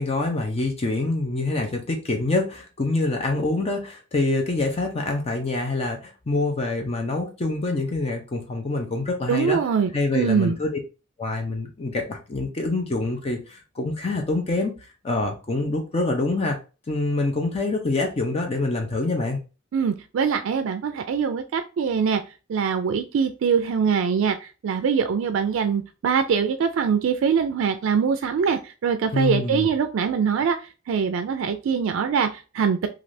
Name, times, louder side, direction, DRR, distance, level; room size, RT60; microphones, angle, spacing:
voice 1, 0.0-9.6 9.9-10.8 11.2-16.6 16.9-19.4 29.1-29.7, left 2 dB, 30° left, 3 dB, 0.5 m, -26 dB
voice 2, 9.3-10.6 19.7-22.2 22.5-32.9, right 6 dB, 80° right, 8 dB, 0.3 m, -23 dB
3.3 x 2.4 x 2.5 m, 0.32 s
head